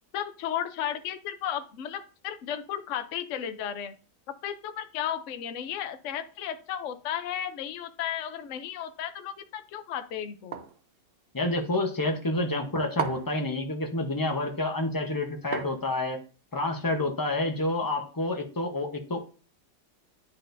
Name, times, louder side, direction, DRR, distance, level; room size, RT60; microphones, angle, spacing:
voice 1, 0.1-3.9 4.3-10.6, left 10 dB, 60° left, 9 dB, 0.9 m, -34 dB
sound 1, 10.5-10.8 13.0-13.4 15.5-16.1, right 7 dB, 60° right, 0.6 m, -34 dB
voice 2, 11.3-16.2 16.5-19.2, left 2 dB, 20° left, 4 dB, 0.6 m, -28 dB
10.0 x 4.2 x 2.6 m, 0.36 s
omnidirectional pair, 1.7 m